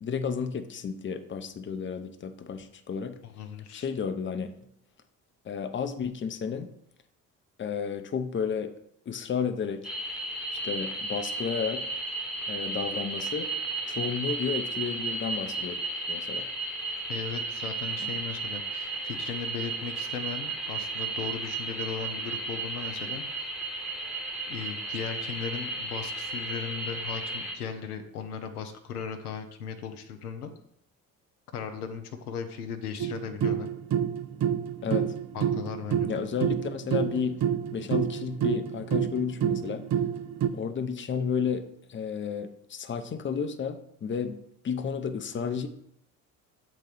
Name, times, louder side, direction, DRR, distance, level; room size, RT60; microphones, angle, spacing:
voice 1, 0.0-3.2 3.7-4.5 5.4-6.7 7.6-8.7 9.1-9.9 10.5-11.9 12.5-13.5 13.9-15.8 16.1-16.5 34.8-35.1 36.1-37.4 37.7-39.8 40.5-44.4 44.6-45.7, left 6 dB, 25° left, 9 dB, 0.8 m, -32 dB
voice 2, 3.2-3.9 17.1-23.2 24.5-30.5 31.5-33.7 35.3-36.2, left 7 dB, 85° left, 6 dB, 0.7 m, -37 dB
sound 1, 9.8-27.5, right 3 dB, ahead, 1.3 m, -34 dB
sound 2, 33.0-40.5, right 9 dB, 40° right, 0.6 m, -28 dB
7.5 x 4.0 x 4.9 m, 0.71 s
figure-of-eight pair, 50°, 45 cm